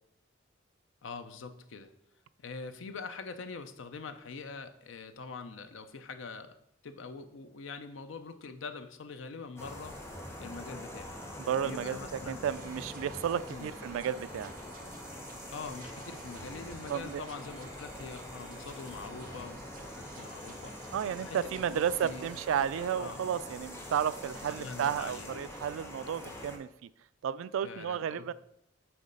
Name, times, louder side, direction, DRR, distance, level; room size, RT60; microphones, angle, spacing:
voice 1, 1.0-1.9 2.4-6.5 6.8-10.0 10.4-11.2 11.6-12.4 13.5-13.7 15.5-20.9 21.2-21.4 21.7-22.3 23.0-23.6 24.5-25.5 26.2-26.5 27.6-28.3, left 4 dB, 75° left, 9 dB, 0.5 m, -44 dB
sound 1, 9.6-26.6, left 1 dB, 15° left, 1.0 m, -44 dB
voice 2, 11.4-14.5 16.9-17.2 20.9-26.9 27.2-28.3, right 8 dB, 90° right, 16 dB, 0.3 m, -33 dB
sound 2, 12.4-22.4, right 4 dB, 45° right, 0.9 m, -53 dB
7.8 x 3.2 x 5.3 m, 0.77 s
head